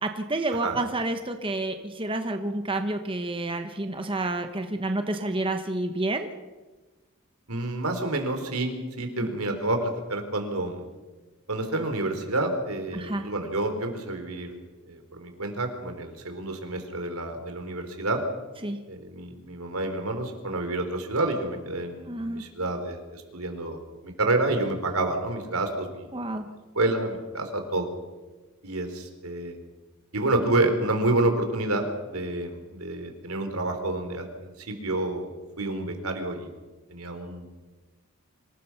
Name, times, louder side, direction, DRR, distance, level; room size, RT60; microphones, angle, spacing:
voice 1, 0.0-6.3 12.9-13.3 18.6-18.8 22.1-22.4 26.1-26.5, right 2 dB, 25° right, 6 dB, 1.2 m, -29 dB
voice 2, 7.5-10.8 11.5-14.5 14.9-18.2 18.9-26.1 26.7-27.9 28.6-29.6 30.1-36.5 36.9-37.5, right 2 dB, 90° right, 6 dB, 3.8 m, -29 dB
25.5 x 19.5 x 5.9 m, 1.2 s
head